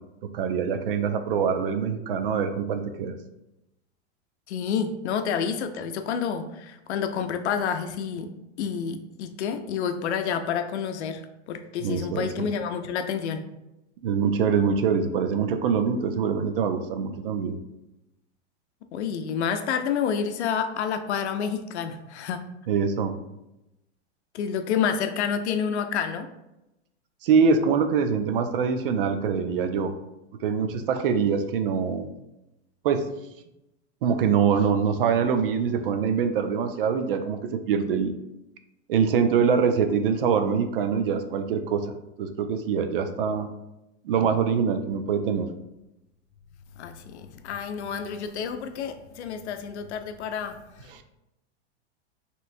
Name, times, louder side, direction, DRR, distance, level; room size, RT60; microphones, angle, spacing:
voice 1, 0.3-3.1 11.8-12.5 14.0-17.6 22.7-23.1 27.2-29.9 30.4-32.1 32.8-33.1 34.0-38.1 38.9-41.9 42.2-43.5 44.0-45.5 50.9-51.0, right 6 dB, 55° right, 8 dB, 0.5 m, -24 dB
voice 2, 4.5-8.3 8.6-11.2 11.5-13.4 18.9-22.4 24.3-26.3 46.8-50.5, left 7 dB, 75° left, 7 dB, 0.6 m, -29 dB
5.5 x 3.1 x 2.6 m, 0.92 s
supercardioid pair, 180°, 34 cm